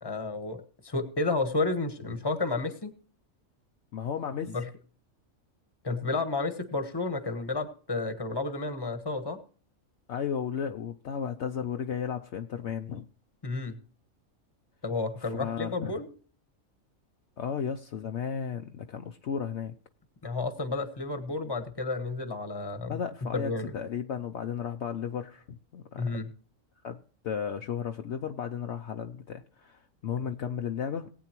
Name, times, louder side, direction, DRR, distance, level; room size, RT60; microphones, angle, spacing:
voice 1, 0.0-2.9 4.5-4.7 5.8-9.4 13.4-13.7 14.8-16.1 20.2-23.0 23.3-23.7 26.0-26.3, left 3 dB, 20° left, 9 dB, 1.2 m, -31 dB
voice 2, 3.9-4.6 10.1-13.1 15.2-16.0 17.4-19.7 22.9-26.1 26.8-27.0 27.2-31.1, left 7 dB, 65° left, 5 dB, 0.9 m, -34 dB
19.5 x 8.8 x 3.0 m, 0.42 s
omnidirectional pair, 1.4 m